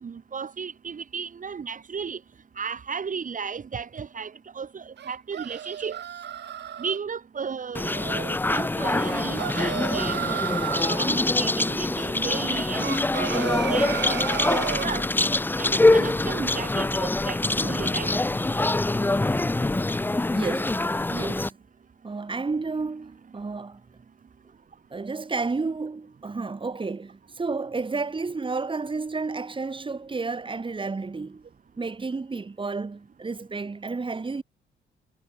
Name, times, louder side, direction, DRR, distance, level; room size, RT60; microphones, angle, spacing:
voice 1, 0.0-2.2 2.6-6.0 6.8-10.5 11.0-12.9 13.3-14.2 14.5-15.1 15.6-18.1, right 6 dB, 40° right, 3.2 m, -34 dB
sound 1, 5.0-7.0 9.0-11.0 12.8-14.9, right 9 dB, 60° right, 2.4 m, -32 dB
sound 2, 7.7-21.5, left 2 dB, 10° left, 0.6 m, -24 dB
voice 2, 20.3-20.8 21.1-21.6 22.0-23.8 24.9-31.4 31.8-34.4, right 4 dB, 25° right, 3.6 m, -31 dB
cardioid pair, 90°, 20 cm